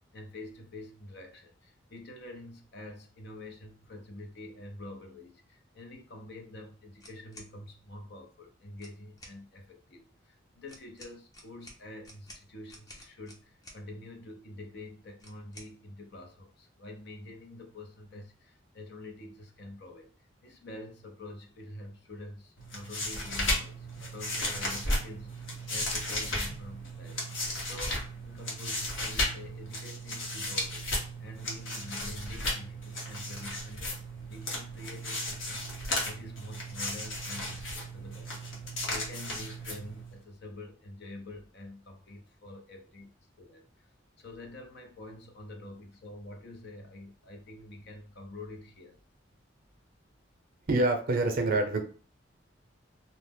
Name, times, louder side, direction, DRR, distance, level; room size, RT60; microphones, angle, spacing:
voice 1, 0.0-20.1 20.4-34.0 34.3-43.9 44.2-49.0, left 1 dB, 60° left, 3 dB, 0.6 m, -47 dB
sound 1, 7.0-7.5 8.7-9.4 10.7-13.8 15.2-15.7, left 1 dB, 20° left, 0.6 m, -51 dB
sound 2, 22.6-40.2, left 1 dB, 85° left, 1.0 m, -35 dB
voice 2, 50.7-51.8, right 2 dB, 50° right, 5 dB, 0.6 m, -26 dB
2.7 x 2.0 x 3.4 m, 0.40 s
head